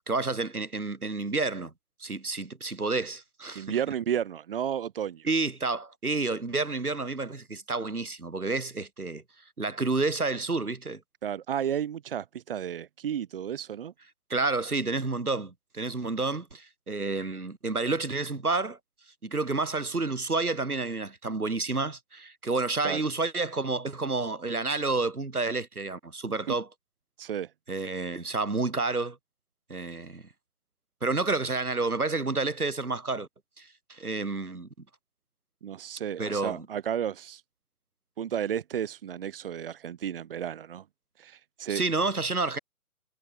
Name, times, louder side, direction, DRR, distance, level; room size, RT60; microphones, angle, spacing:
voice 1, 0.1-1.7 2.0-3.8 5.2-9.2 9.6-11.0 14.3-18.8 19.2-26.7 27.7-29.2 29.7-30.3 31.0-33.3 33.6-34.7 36.2-36.7 41.7-42.6, right 3 dB, 75° right, 6.7 m, -30 dB
voice 2, 3.5-5.3 11.2-13.9 22.8-23.0 26.5-26.6 27.2-27.5 35.6-37.4 38.2-40.8 41.2-41.8, right 9 dB, 40° right, 2.7 m, -32 dB
figure-of-eight pair, 145°, 45 cm